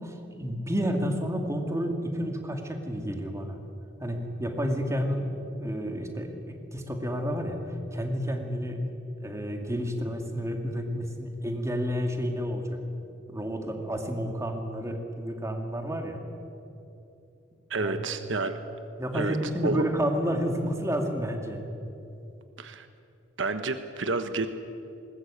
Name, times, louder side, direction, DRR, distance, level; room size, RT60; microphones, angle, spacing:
voice 1, 0.0-3.6 4.0-5.3 5.6-8.8 9.2-16.2 17.8-18.0 19.0-21.6, equal, 15° right, 3 dB, 2.3 m, -30 dB
voice 2, 17.7-18.6 19.1-19.4 19.6-19.8 22.6-22.9 23.4-24.5, right 3 dB, 75° right, 9 dB, 1.1 m, -29 dB
20.5 x 19.5 x 8.6 m, 2.9 s
head